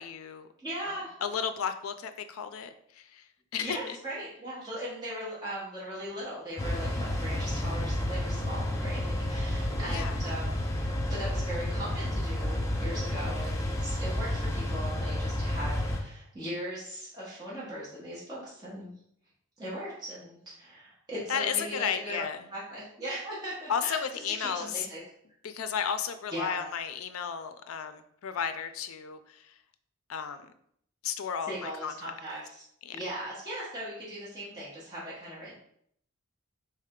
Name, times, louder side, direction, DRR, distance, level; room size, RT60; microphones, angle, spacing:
voice 1, 0.0-0.5 0.8-3.2 3.5-4.0 9.9-10.2 21.3-22.4 23.7-24.9 25.4-29.5 30.1-30.5 31.0-32.1 32.8-33.0, left 7 dB, 75° left, 10 dB, 0.4 m, -33 dB
voice 2, 0.6-1.3 3.6-10.7 11.1-18.9 19.6-25.0 26.3-26.6 31.5-32.4 32.9-35.5, equal, 20° right, -8 dB, 1.2 m, -39 dB
sound 1, 6.6-16.0, left 1 dB, 15° left, 0.5 m, -31 dB
3.5 x 3.3 x 3.6 m, 0.68 s
head